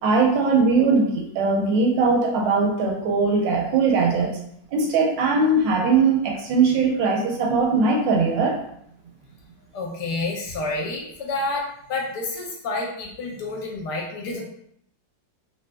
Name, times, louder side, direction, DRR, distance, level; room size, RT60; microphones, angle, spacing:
voice 1, 0.0-4.4 4.7-8.6, right 4 dB, 80° right, 0 dB, 1.4 m, -20 dB
voice 2, 9.7-14.4, left 2 dB, 70° left, -1 dB, 1.1 m, -29 dB
3.4 x 2.8 x 2.2 m, 0.70 s
omnidirectional pair, 2.0 m